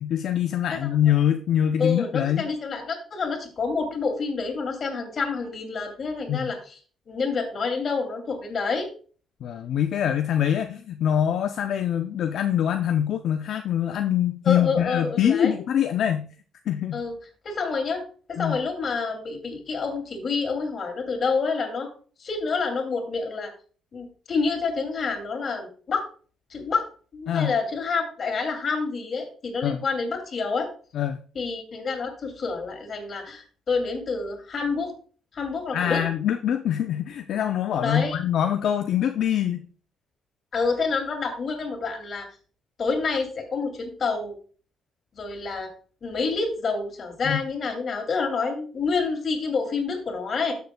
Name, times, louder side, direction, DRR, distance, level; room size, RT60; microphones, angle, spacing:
voice 1, 0.0-2.5 6.3-6.5 9.4-16.3 16.7-17.0 18.4-18.6 27.3-27.5 29.6-29.8 30.9-31.2 35.7-39.7 47.2-47.4, left 10 dB, 70° left, 7 dB, 0.5 m, -24 dB
voice 2, 1.8-6.8 7.1-8.9 14.4-15.5 16.9-17.1 17.4-18.0 18.3-21.9 22.2-23.5 23.9-26.1 26.5-26.8 27.1-30.7 31.3-34.9 35.3-36.0 37.7-38.2 40.5-42.3 42.8-44.3 45.1-45.7 46.0-50.5, left 4 dB, 50° left, 3 dB, 2.6 m, -28 dB
13.0 x 6.8 x 2.3 m, 0.41 s
cardioid pair, 90°, 0 cm